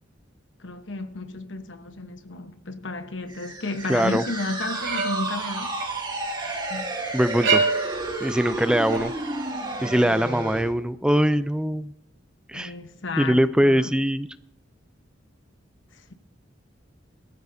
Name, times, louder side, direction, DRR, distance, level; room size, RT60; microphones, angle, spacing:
voice 1, 0.6-5.8 6.7-7.0 12.5-13.9 15.9-16.1, left 2 dB, 75° left, 1.2 m, -33 dB
sound 1, 3.3-10.7, right 2 dB, 25° right, 2.2 m, -32 dB
voice 2, 3.9-4.2 7.1-7.6 8.2-9.1 9.8-11.9 12.5-12.7 13.2-14.3, equal, 5° right, 0.4 m, -22 dB
sound 2, 4.6-5.4 5.8-6.6 7.3-8.1 8.9-9.0, right 4 dB, 85° right, 4.9 m, -26 dB
22.0 x 14.5 x 2.8 m
head